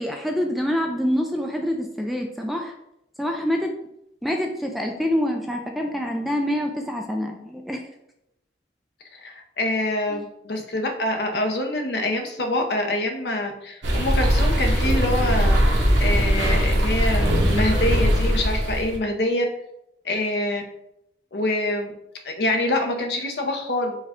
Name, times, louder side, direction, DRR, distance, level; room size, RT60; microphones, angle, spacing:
voice 1, 0.0-2.7 3.2-3.7 4.2-7.9 10.1-10.2, equal, ahead, 2 dB, 0.3 m, -26 dB
voice 2, 9.1-15.6 16.0-19.4 20.0-20.6 21.3-21.9 22.2-24.0, left 1 dB, 65° left, 4 dB, 0.7 m, -25 dB
sound 1, 13.8-19.0, equal, 90° right, 0.9 m, -20 dB
4.7 x 2.2 x 4.2 m, 0.81 s
head